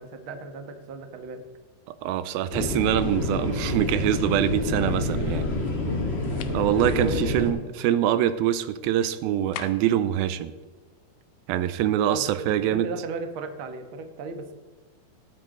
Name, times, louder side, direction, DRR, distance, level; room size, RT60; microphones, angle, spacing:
voice 1, 0.0-1.4 6.8-7.5 12.1-14.5, right 3 dB, 70° right, 6 dB, 1.2 m, -35 dB
voice 2, 1.9-5.5 6.5-10.5 11.5-12.9, right 11 dB, 85° right, 13 dB, 2.5 m, -24 dB
sound 1, 2.5-7.5, left 2 dB, 30° left, 1.2 m, -28 dB
sound 2, 6.4-6.7 9.5-10.0, left 11 dB, 80° left, 1.8 m, -38 dB
18.5 x 9.1 x 3.8 m, 1.4 s
omnidirectional pair, 4.3 m